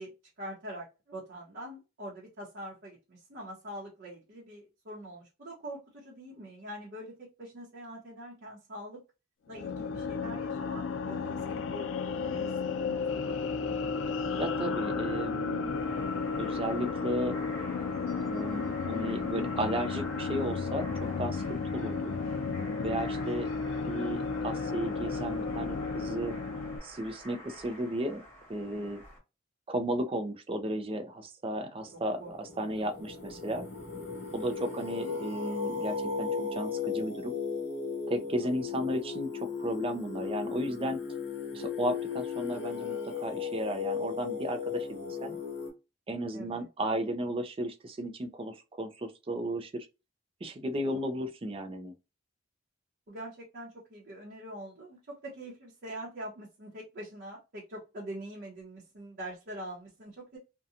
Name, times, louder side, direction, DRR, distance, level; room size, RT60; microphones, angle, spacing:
voice 1, 0.0-9.0 9.5-13.4 31.6-31.8 32.2-32.3 32.8-32.9 38.4-38.5 46.3-46.7 53.1-60.4, right 1 dB, 55° right, 0.8 m, -44 dB
sound 1, 9.5-26.8, left 4 dB, 85° left, 0.4 m, -33 dB
voice 2, 14.4-15.8 16.4-17.4 18.2-22.1 22.8-23.5 23.8-26.3 26.8-28.2 28.5-29.0 29.7-33.6 34.3-37.4 38.1-41.0 41.5-45.4 46.1-49.9 50.4-51.9, right 1 dB, 30° right, 0.4 m, -34 dB
sound 2, 15.5-29.2, equal, 10° left, 1.3 m, -48 dB
Singing, 31.8-45.7, left 6 dB, 60° left, 1.0 m, -36 dB
2.7 x 2.2 x 2.4 m
head